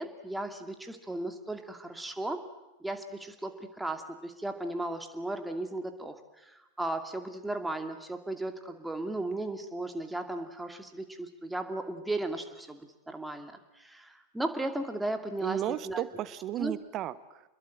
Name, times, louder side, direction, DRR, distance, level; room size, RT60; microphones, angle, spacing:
voice 1, 0.0-2.5 2.8-6.2 6.5-12.8 13.1-16.0 16.6-16.7, right 2 dB, 5° right, 6 dB, 2.5 m, -36 dB
voice 2, 15.4-17.4, right 12 dB, 35° right, 16 dB, 1.3 m, -34 dB
28.0 x 21.5 x 9.1 m, 0.99 s
figure-of-eight pair, 90°, 0 cm